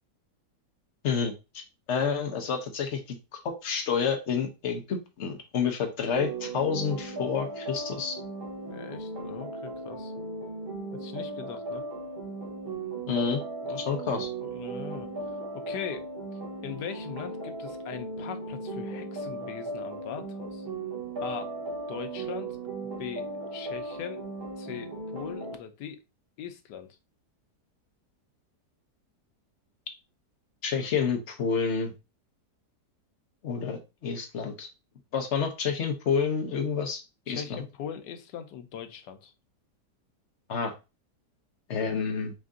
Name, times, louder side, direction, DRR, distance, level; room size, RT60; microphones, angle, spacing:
voice 1, 1.0-1.3 1.9-8.2 13.1-13.4 13.8-14.3 30.6-31.9 33.4-34.7 35.1-37.6 40.5-40.7 41.7-42.3, left 6 dB, 55° left, 5 dB, 0.9 m, -29 dB
sound 1, 6.1-25.6, right 2 dB, 40° right, 1.0 m, -37 dB
voice 2, 8.7-10.1 10.9-11.8 13.6-13.8 14.4-15.1 15.5-16.1 16.6-20.7 21.2-21.6 21.9-22.6 23.0-24.2 24.6-26.0 26.4-26.9 37.3-39.3, left 8 dB, 85° left, 8 dB, 1.3 m, -40 dB
4.4 x 2.6 x 3.6 m, 0.27 s
omnidirectional pair, 1.8 m